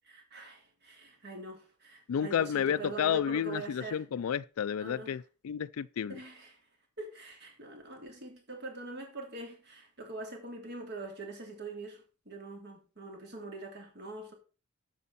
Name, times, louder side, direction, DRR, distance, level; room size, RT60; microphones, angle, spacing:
voice 1, 0.1-0.6 0.8-1.6 1.8-4.0 4.8-5.2 6.1-6.5 7.0-12.0 12.3-14.3, right 2 dB, 55° right, 3.2 m, -43 dB
voice 2, 2.1-6.2, left 8 dB, 80° left, 0.4 m, -31 dB
12.0 x 7.1 x 4.2 m
head